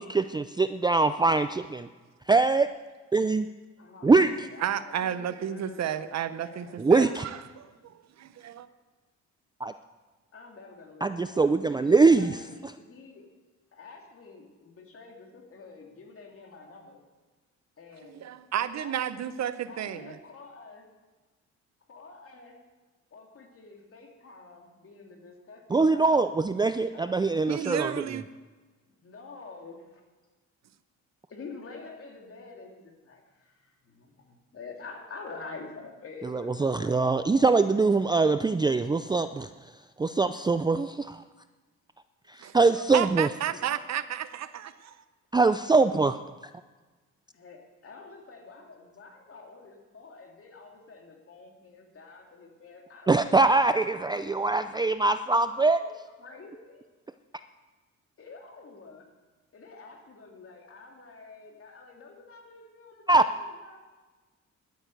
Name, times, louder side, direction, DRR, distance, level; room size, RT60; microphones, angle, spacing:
voice 1, 0.0-1.9 2.3-2.7 3.1-3.5 4.0-4.5 6.8-7.2 9.6-9.7 11.0-12.4 25.7-28.0 36.2-39.5 40.0-41.2 42.3-43.3 45.3-46.2 53.1-55.8 63.1-63.3, right 3 dB, 15° right, 0.4 m, -23 dB
voice 2, 3.8-6.8 10.3-13.2 13.7-17.0 17.8-18.2 18.8-19.0 19.7-20.8 21.9-22.6 23.1-26.1 26.9-27.4 29.0-30.0 31.3-37.7 47.3-53.5 53.9-54.5 55.6-56.8 58.2-59.0 59.5-63.8, left 4 dB, 45° left, 3.1 m, -48 dB
voice 3, 4.6-8.7 18.0-20.2 27.5-28.2 42.4-45.0, right 10 dB, 60° right, 0.8 m, -32 dB
11.5 x 9.6 x 8.0 m
cardioid pair, 90°, 30 cm